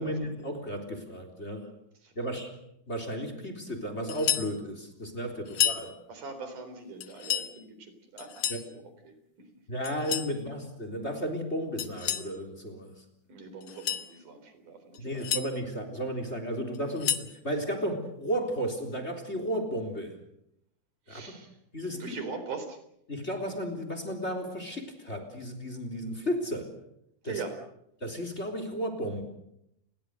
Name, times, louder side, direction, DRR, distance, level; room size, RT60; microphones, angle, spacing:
voice 1, 0.0-1.7 2.2-2.5 2.9-6.0 8.5-8.6 9.7-13.0 15.0-20.2 21.1-21.3 21.7-22.1 23.1-26.7 27.2-27.4 28.0-29.2, equal, 20° left, 7 dB, 3.8 m, -34 dB
sound 1, 4.1-4.5 5.5-5.9 7.0-7.5 8.2-8.7 9.8-10.3 11.8-12.3 13.6-14.1 14.9-15.5 16.7-17.3, left 9 dB, 55° left, 1.8 m, -30 dB
voice 2, 6.1-9.5 13.3-15.3 21.1-21.6 21.9-22.8 27.2-27.6, right 4 dB, 85° right, 8 dB, 5.3 m, -42 dB
29.5 x 22.0 x 6.6 m, 0.78 s
omnidirectional pair, 3.5 m